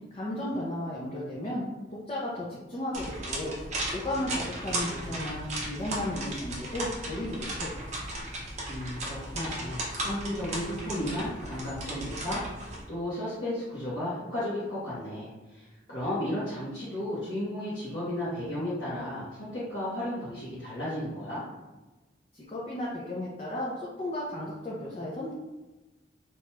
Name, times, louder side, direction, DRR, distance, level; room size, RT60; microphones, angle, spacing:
voice 1, 0.1-1.6 1.9-8.0 22.3-25.3, left 1 dB, 30° left, -6 dB, 0.5 m, -34 dB
sound 1, 2.9-12.8, right 1 dB, 35° right, 0.6 m, -36 dB
voice 2, 8.7-21.4, left 1 dB, 60° left, -12 dB, 1.0 m, -34 dB
2.9 x 2.3 x 3.1 m, 1.1 s
head